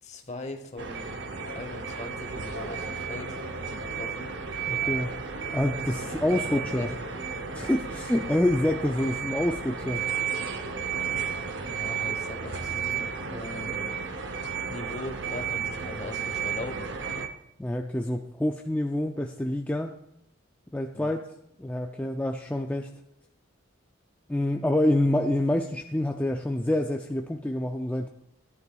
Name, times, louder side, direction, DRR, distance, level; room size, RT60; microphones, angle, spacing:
voice 1, 0.0-1.3 1.5-3.4 3.7-4.3 6.0-6.9 11.7-13.9 14.7-16.9 20.9-21.1, left 2 dB, 35° left, 6 dB, 1.0 m, -40 dB
sound 1, 0.8-17.3, right 6 dB, 60° right, 0.7 m, -33 dB
voice 2, 4.7-5.2 5.5-6.9 7.5-10.0 17.6-19.9 20.7-21.2 21.6-22.9 24.3-28.1, left 1 dB, 10° left, 3 dB, 0.3 m, -27 dB
14.5 x 11.0 x 2.3 m, 0.80 s
head